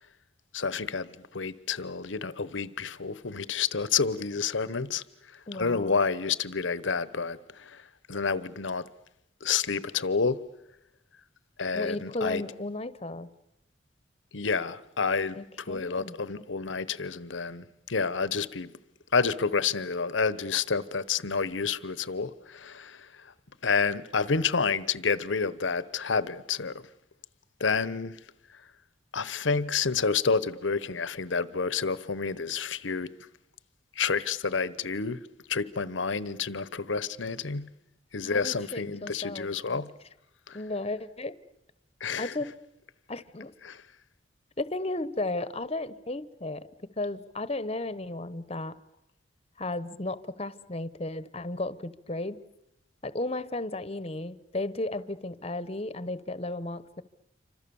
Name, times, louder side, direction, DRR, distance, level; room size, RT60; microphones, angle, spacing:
voice 1, 0.5-5.0 5.5-7.8 8.1-8.9 9.4-10.4 11.6-12.4 14.3-15.4 15.7-18.7 19.1-23.1 23.6-26.8 27.6-28.2 29.1-33.1 34.0-35.2 35.5-37.7 38.1-39.9 40.5-40.6 42.0-42.3 43.6-43.8, left 5 dB, 85° left, 1.0 m, -29 dB
voice 2, 5.5-6.0 11.7-13.3 15.4-16.4 38.2-39.8 40.5-41.4 42.2-42.5 43.1-43.5 44.6-48.7 49.6-52.4 53.0-57.0, left 2 dB, 30° left, 1.0 m, -34 dB
28.0 x 25.5 x 7.1 m
head